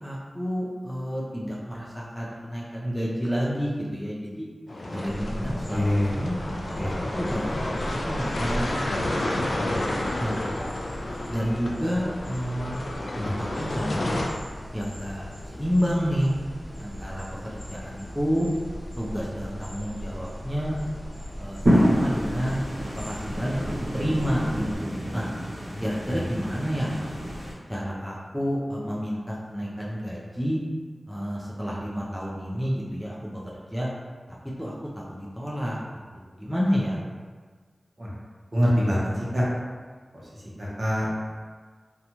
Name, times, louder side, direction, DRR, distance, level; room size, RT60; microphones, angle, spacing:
voice 1, 0.0-4.5 4.9-6.4 7.2-9.6 10.2-10.4 11.3-12.9 13.4-14.2 14.7-16.3 16.8-18.5 19.0-20.8 21.4-25.3 25.8-27.1 27.7-30.6 31.1-33.9 34.6-35.8 36.1-37.0, equal, ahead, -5 dB, 0.5 m, -30 dB
sound 1, 4.7-14.3, left 1 dB, 70° left, 0.3 m, -31 dB
sound 2, 5.1-24.8, equal, 90° left, 0.8 m, -38 dB
voice 2, 5.7-6.2 6.8-6.9 13.1-13.4 25.7-25.8 26.1-26.2 38.0-38.1 38.5-39.5 40.1-41.3, equal, 45° right, -6 dB, 0.8 m, -26 dB
sound 3, 21.7-27.5, equal, 75° right, 0.9 m, -27 dB
2.6 x 2.2 x 2.9 m, 1.5 s
wide cardioid pair, 50°, 0 cm